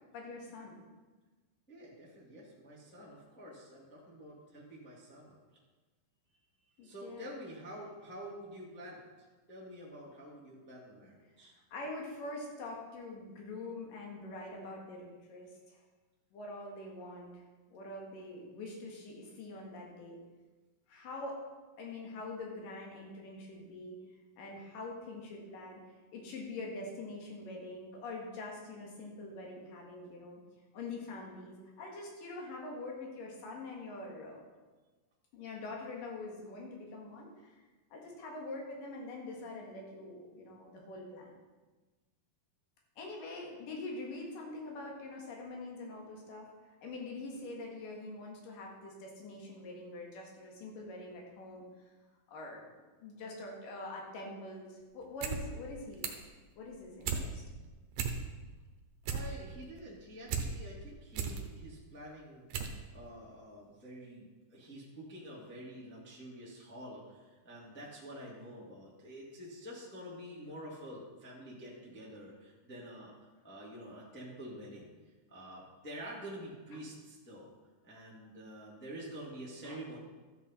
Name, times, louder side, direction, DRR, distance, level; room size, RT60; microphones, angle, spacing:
voice 1, 0.1-0.8 6.8-7.3 11.4-15.8 16.3-17.4 17.7-20.2 20.9-21.4 21.8-24.0 24.4-25.8 26.1-30.4 30.7-34.4 35.3-37.3 37.9-41.4 43.0-46.5 46.8-51.9 52.3-52.7 53.0-56.1 56.6-57.4 79.6-79.8, left 2 dB, 70° left, -1 dB, 3.3 m, -44 dB
voice 2, 1.7-5.4 6.8-9.0 9.5-11.5 59.0-62.4 62.9-73.1 73.4-74.9 75.3-77.5 77.8-80.0, equal, 5° left, -5 dB, 1.2 m, -48 dB
sound 1, 55.0-55.4 55.7-56.3 56.7-57.2 57.6-57.7 57.9-58.5 58.8-60.5 60.9-61.4 62.0-62.1 62.5-62.8 63.1-63.2, right 7 dB, 70° right, 2.3 m, -35 dB
13.0 x 8.1 x 4.3 m, 1.3 s
omnidirectional pair, 4.1 m